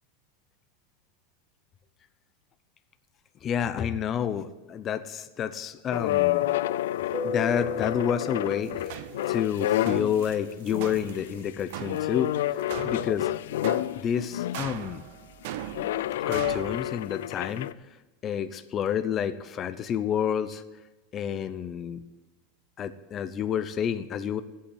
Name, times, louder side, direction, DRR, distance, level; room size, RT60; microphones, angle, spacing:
voice 1, 3.4-6.5 7.2-13.3 14.0-15.0 16.3-18.0 18.2-20.6 21.1-22.0 22.8-24.4, left 8 dB, 25° left, 11 dB, 0.6 m, -29 dB
sound 1, 5.9-10.3 10.7-11.2 11.8-14.7 15.7-17.7, left 14 dB, 80° left, 0.4 m, -29 dB
Keyboard (musical), 7.1-9.7, left 1 dB, 5° right, 1.0 m, -36 dB
sound 2, 8.6-16.8, right 11 dB, 65° right, 0.8 m, -40 dB
12.5 x 8.5 x 8.5 m, 1.1 s
supercardioid pair, 155°, 0 cm